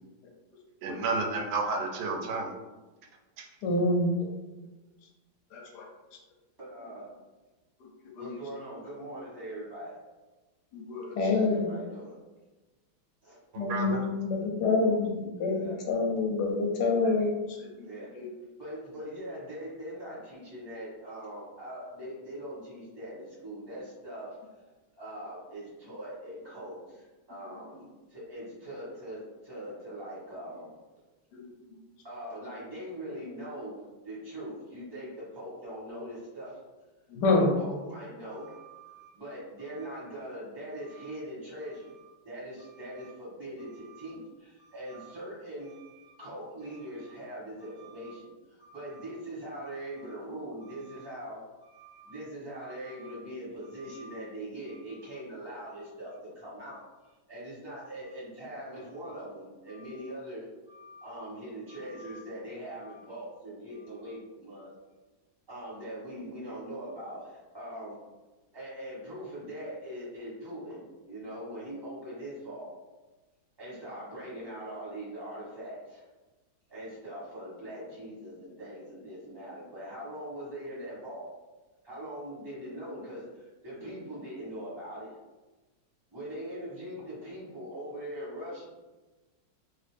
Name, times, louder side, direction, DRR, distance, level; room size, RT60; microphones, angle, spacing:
voice 1, 0.8-2.5 3.4-3.5 13.5-14.0, right 3 dB, 90° right, 2 dB, 1.4 m, -31 dB
voice 2, 3.6-4.3 5.5-5.9 8.2-8.4 10.7-11.7 13.6-17.9 18.1-18.3 31.3-31.5 37.1-37.5, left 3 dB, 70° left, 1 dB, 1.1 m, -27 dB
voice 3, 6.6-7.1 8.1-9.9 11.3-12.1 13.2-13.4 15.5-15.8 17.8-18.1 18.6-24.4 25.0-30.7 32.0-36.6 37.4-56.8 57.3-64.7 65.5-67.9 68.5-72.7 73.6-76.1 76.7-81.2 81.8-85.1 86.1-88.7, right 1 dB, 15° right, -7 dB, 1.2 m, -42 dB
3.0 x 2.9 x 3.2 m, 1.2 s
omnidirectional pair, 2.1 m